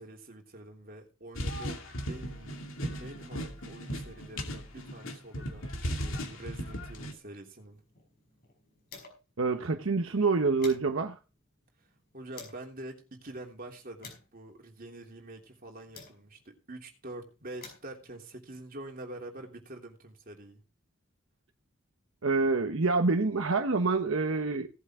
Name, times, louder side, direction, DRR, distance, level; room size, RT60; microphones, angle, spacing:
voice 1, 0.0-2.5 3.0-7.8 12.1-20.6, right 1 dB, 45° right, 3.1 m, -46 dB
sound 1, 1.3-7.1, equal, 75° left, 2.6 m, -37 dB
sound 2, 7.6-9.4 9.7-9.8 10.2-12.7 13.3-16.5 17.3-19.5, left 4 dB, 50° left, 5.5 m, -53 dB
voice 2, 9.4-11.2 22.2-24.7, right 3 dB, 75° right, 1.0 m, -27 dB
17.5 x 8.1 x 3.7 m
head